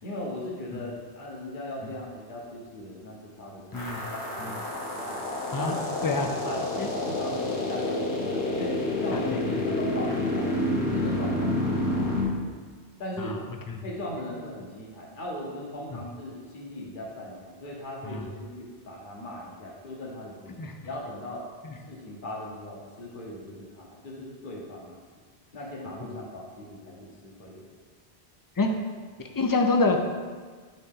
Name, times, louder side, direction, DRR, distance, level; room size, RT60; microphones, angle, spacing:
voice 1, 0.0-4.5 5.0-5.2 5.5-6.1 6.4-6.6 7.0-12.6 13.0-13.4 13.8-21.5 21.8-25.0 25.5-27.7 28.6-28.7, left 1 dB, 50° left, -3 dB, 1.3 m, -38 dB
sound 1, 3.7-12.2, left 1 dB, 80° left, 1.5 m, -29 dB
voice 2, 29.3-30.0, left 3 dB, 30° left, 3 dB, 0.4 m, -26 dB
9.2 x 4.0 x 3.7 m, 1.5 s
omnidirectional pair, 1.1 m